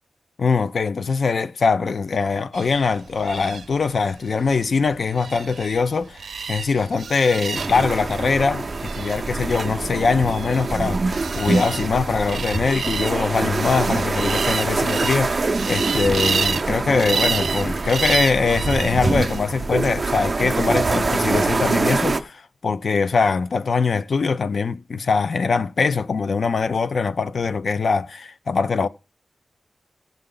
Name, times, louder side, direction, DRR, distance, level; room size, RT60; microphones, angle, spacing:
voice 1, 0.4-6.2 6.5-28.9, left 4 dB, 60° left, 0.4 m, -22 dB
sound 1, 2.5-19.4, right 6 dB, 90° right, 0.5 m, -31 dB
sound 2, 7.5-22.2, right 3 dB, 35° right, 0.6 m, -24 dB
16.0 x 6.8 x 3.8 m
wide cardioid pair, 160°, 0 cm